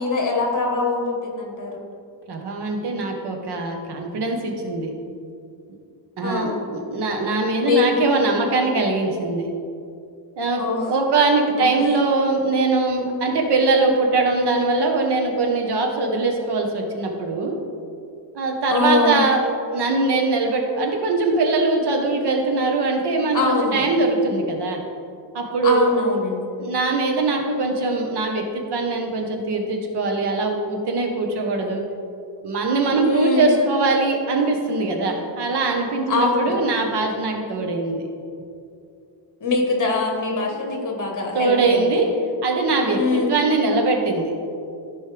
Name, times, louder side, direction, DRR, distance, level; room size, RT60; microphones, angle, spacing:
voice 1, 0.0-1.8 6.2-6.6 7.6-7.9 10.6-10.9 11.5-11.8 18.7-19.2 23.3-23.9 25.6-26.5 33.0-33.5 36.1-36.6 39.4-41.9 42.9-43.3, left 3 dB, 45° left, 0 dB, 1.7 m, -23 dB
voice 2, 2.3-4.9 6.2-9.5 10.4-17.5 18.3-19.4 19.7-24.8 25.3-25.9 26.6-31.8 32.4-38.1 40.4-40.6 41.3-42.1 42.4-44.3, right 3 dB, 65° right, 2 dB, 1.3 m, -22 dB
14.0 x 5.4 x 3.4 m, 2.4 s
wide cardioid pair, 160°, 42 cm